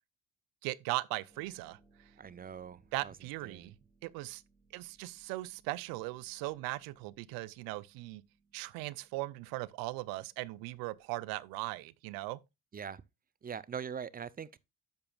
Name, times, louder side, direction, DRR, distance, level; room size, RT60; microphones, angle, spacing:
voice 1, 0.6-1.8 2.9-3.7 4.0-4.4 4.7-8.2 8.5-12.4, right 19 dB, 80° right, 0.6 m, -38 dB
Harp, 1.3-11.8, right 3 dB, 5° right, 3.8 m, -70 dB
voice 2, 2.2-3.1 3.4-3.7 12.7-13.0 13.4-14.5, right 7 dB, 25° right, 0.6 m, -42 dB
10.5 x 6.8 x 2.3 m
supercardioid pair, 70°, 34 cm